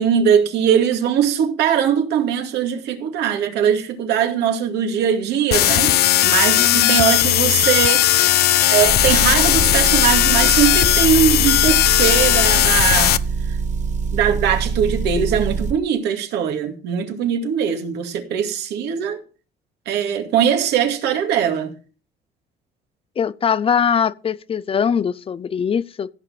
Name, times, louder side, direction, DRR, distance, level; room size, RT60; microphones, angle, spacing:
voice 1, 0.0-6.0 6.2-8.0 8.7-13.2 13.5-13.6 14.1-19.2 19.9-21.7, right 8 dB, 80° right, 2.3 m, -20 dB
sound 1, 5.5-13.2, left 14 dB, 70° left, 0.7 m, -16 dB
voice 2, 6.6-7.4 23.2-26.1, left 7 dB, 35° left, 0.6 m, -22 dB
Motor vehicle (road) / Engine, 8.8-15.8, right 5 dB, 45° right, 1.6 m, -24 dB
15.5 x 6.7 x 5.7 m
cardioid pair, 110°, 17 cm